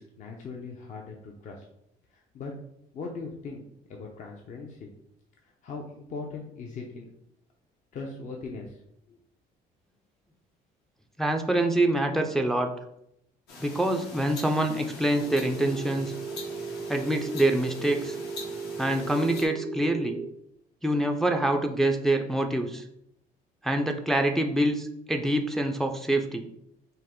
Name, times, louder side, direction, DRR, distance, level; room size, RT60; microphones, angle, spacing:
voice 1, 0.0-1.7 2.1-2.5 2.9-3.6 3.9-4.9 5.6-7.1 7.9-8.8, left 4 dB, 50° left, 1 dB, 0.6 m, -39 dB
voice 2, 11.2-12.7 13.6-16.1 16.9-18.2 18.8-20.2 20.8-22.8 23.6-26.5, right 1 dB, ahead, 4 dB, 0.4 m, -25 dB
sound 1, 13.5-19.5, left 3 dB, 75° left, 1.1 m, -43 dB
Telephone, 15.2-20.2, right 5 dB, 85° right, 0.8 m, -36 dB
5.3 x 2.0 x 3.7 m, 0.76 s
cardioid pair, 110°, 17 cm